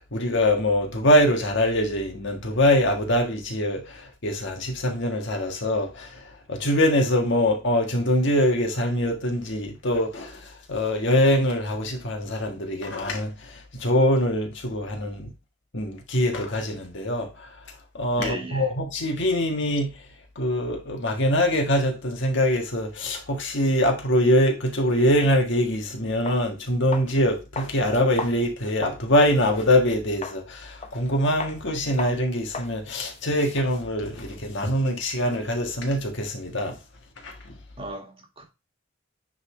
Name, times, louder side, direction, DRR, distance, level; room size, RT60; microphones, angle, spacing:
voice 1, 0.0-15.3 15.7-17.5 17.9-19.9 20.3-36.8 37.2-37.5, left 1 dB, 65° left, 1.6 m, -23 dB
voice 2, 18.2-18.7 37.8-38.4, equal, 30° right, 1.8 m, -35 dB
sound 1, 25.7-25.8 26.3-26.4 26.9-27.2 27.6-29.1 29.5-29.6 30.2-30.4 30.8-31.1 31.4-31.6 32.0-32.2 32.5-32.7 33.0-35.0, left 4 dB, 35° left, 0.8 m, -36 dB
9.4 x 3.8 x 3.2 m
head